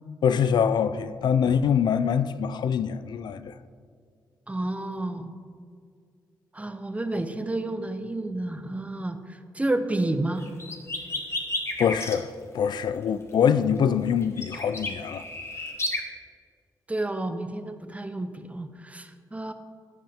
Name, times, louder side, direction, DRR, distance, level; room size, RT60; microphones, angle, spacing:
voice 1, 0.2-3.5 11.8-12.3 12.5-15.2, left 7 dB, 70° left, 0.3 m, -24 dB
voice 2, 4.5-5.3 6.5-9.2 9.5-10.4 16.9-19.5, right 2 dB, 15° right, 0.8 m, -30 dB
sound 1, 10.4-12.2 14.2-16.0, left 2 dB, 35° left, 1.4 m, -31 dB
15.5 x 5.4 x 3.5 m
cardioid pair, 55°, 8 cm